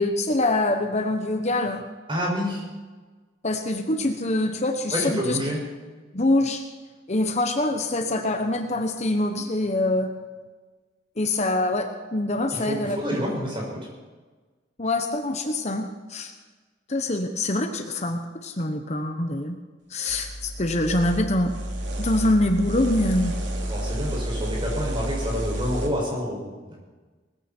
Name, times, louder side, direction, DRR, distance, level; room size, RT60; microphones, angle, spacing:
voice 1, 0.0-1.8 3.4-5.4 6.1-6.6 7.1-10.2 11.2-13.0 14.8-16.3 16.9-19.6 19.9-21.5 22.0-23.3, left 2 dB, 40° left, 5 dB, 1.1 m, -24 dB
voice 2, 2.1-2.7 4.9-5.6 12.5-13.8 23.7-26.4 26.7-26.8, equal, 30° right, -2 dB, 6.2 m, -28 dB
sound 1, 20.1-25.9, right 1 dB, 90° right, 2.8 m, -30 dB
20.0 x 15.0 x 4.5 m, 1.3 s
head